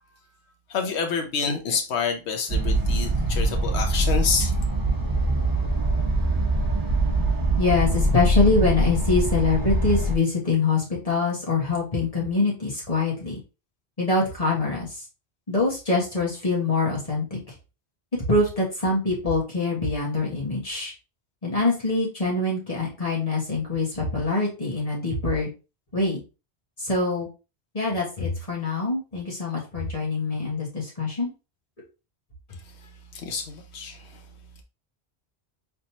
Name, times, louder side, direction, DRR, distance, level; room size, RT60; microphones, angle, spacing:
voice 1, 0.7-4.5 32.6-34.3, left 5 dB, 90° left, 1.0 m, -28 dB
sound 1, 2.5-10.2, right 1 dB, 20° right, 1.0 m, -23 dB
voice 2, 7.6-13.4 14.0-15.0 15.5-17.4 18.3-20.9 21.4-25.5 25.9-26.2 26.8-27.3 27.7-31.3, left 3 dB, 35° left, 1.8 m, -24 dB
4.0 x 3.5 x 2.9 m
omnidirectional pair, 1.1 m